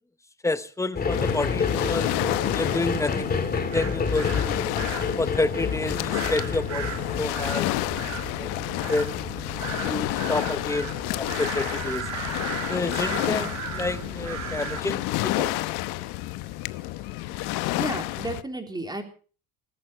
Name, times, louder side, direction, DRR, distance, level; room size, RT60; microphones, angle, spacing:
voice 1, 0.4-2.1 2.5-4.6 5.2-7.7 8.4-9.3 9.8-12.1 12.7-13.5 13.7-15.7, left 2 dB, 10° left, 0.9 m, -29 dB
sound 1, 0.9-16.5 17.1-17.2, left 5 dB, 25° left, 2.4 m, -31 dB
Waves surf, 1.1-18.4, left 18 dB, 75° left, 1.0 m, -30 dB
sound 2, 3.7-14.8, right 9 dB, 40° right, 2.0 m, -37 dB
voice 2, 17.7-19.0, right 2 dB, 10° right, 3.6 m, -33 dB
18.5 x 15.0 x 4.5 m
cardioid pair, 150°, 39 cm